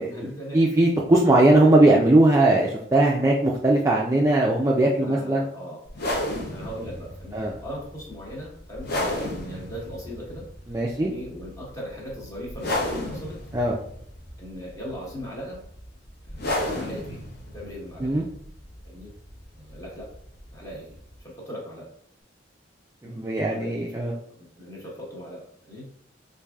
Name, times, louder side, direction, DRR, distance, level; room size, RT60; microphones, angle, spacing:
voice 1, 0.0-0.6 1.8-1.9 4.9-5.9 6.5-10.5 11.0-13.4 14.4-15.7 16.3-18.1 18.8-19.1 19.5-20.1 20.5-21.9 23.0-23.2 23.5-23.9 24.4-25.9, equal, 15° left, -4 dB, 1.0 m, -39 dB
voice 2, 0.5-5.4 7.3-7.5 10.7-11.1 13.5-13.7 18.0-18.2 23.0-24.1, right 2 dB, 15° right, -3 dB, 0.3 m, -19 dB
sound 1, 5.9-21.2, left 1 dB, 55° left, 0.7 m, -34 dB
4.6 x 2.6 x 2.3 m, 0.68 s
head